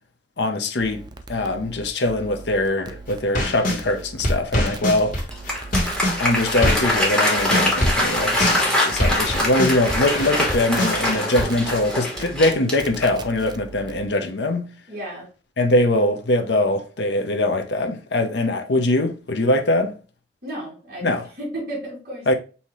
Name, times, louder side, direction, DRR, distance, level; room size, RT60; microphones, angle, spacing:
voice 1, 0.4-1.0 1.3-5.2 6.2-14.7 15.6-19.9 21.0-21.3 22.3-22.4, left 1 dB, 70° left, 0.8 m, -22 dB
sound 1, 0.8-7.1 7.4-7.7 8.2-8.6 8.9-14.1, right 3 dB, 25° right, 0.4 m, -39 dB
sound 2, 3.1-3.8 4.2-7.0 7.2-11.4, equal, 50° left, 1.6 m, -23 dB
Applause, 5.2-13.3, left 1 dB, 5° left, 1.6 m, -23 dB
voice 2, 14.9-15.3 20.4-21.1 21.4-22.4, right 1 dB, 55° right, 2.4 m, -33 dB
5.6 x 2.8 x 3.1 m
head